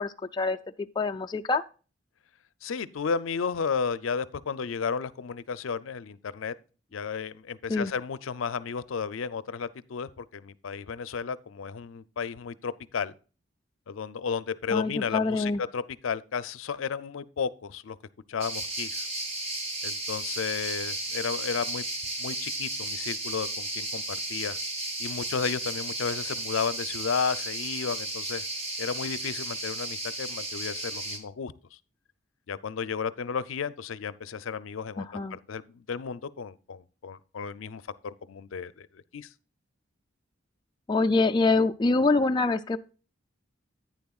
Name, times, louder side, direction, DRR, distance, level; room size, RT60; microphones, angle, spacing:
voice 1, 0.0-1.6 7.7-7.9 14.7-15.6 35.0-35.4 40.9-42.8, left 3 dB, 20° left, 0.3 m, -25 dB
voice 2, 2.6-6.5 6.9-13.1 13.9-18.0 18.3-19.1 19.8-21.8 22.2-24.6 25.0-28.4 28.8-31.5 32.5-39.3, left 6 dB, 85° left, 0.5 m, -33 dB
sound 1, 18.4-31.2, right 2 dB, 30° right, 1.4 m, -34 dB
10.5 x 9.3 x 2.3 m
head